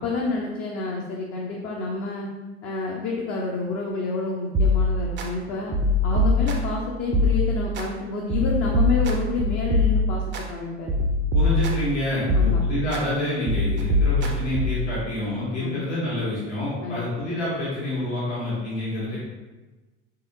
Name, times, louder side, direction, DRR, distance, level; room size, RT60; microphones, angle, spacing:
voice 1, 0.0-2.3 2.6-5.8 6.0-11.0 12.3-12.6 15.6-15.8 16.8-17.0, left 3 dB, 40° left, -2 dB, 0.5 m, -28 dB
sound 1, 4.5-5.3 5.7-6.8 7.1-7.9 8.3-10.4 10.9-11.9 12.3-13.0 13.5-14.9, left 2 dB, 35° right, 0.5 m, -22 dB
voice 2, 11.3-19.2, left 1 dB, 75° left, -8 dB, 1.4 m, -27 dB
3.4 x 2.7 x 2.5 m, 1.2 s
figure-of-eight pair, 70°, 34 cm